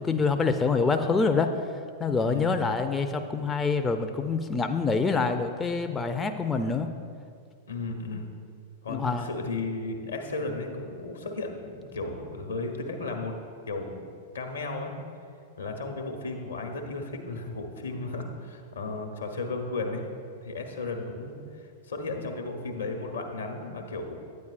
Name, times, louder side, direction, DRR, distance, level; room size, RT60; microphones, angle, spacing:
voice 1, 0.0-1.5 2.0-6.9 8.9-9.3, left 4 dB, 15° left, 6 dB, 0.3 m, -26 dB
voice 2, 2.2-2.6 7.7-8.3 8.8-13.3 13.7-14.0 14.3-14.9 15.6-20.0 20.4-21.4 21.9-24.2, left 3 dB, 80° left, 4 dB, 0.9 m, -34 dB
9.3 x 8.4 x 2.4 m, 2.2 s
figure-of-eight pair, 95°, 0 cm